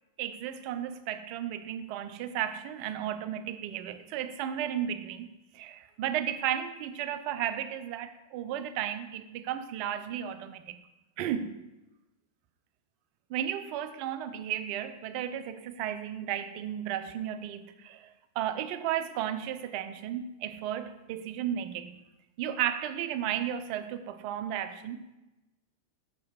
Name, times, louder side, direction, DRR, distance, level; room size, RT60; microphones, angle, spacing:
voice 1, 0.2-10.8 11.2-11.6 13.3-22.0 22.4-25.2, right 10 dB, 45° right, 11 dB, 0.4 m, -34 dB
6.6 x 4.9 x 4.5 m, 1.0 s
figure-of-eight pair, 90°, 0 cm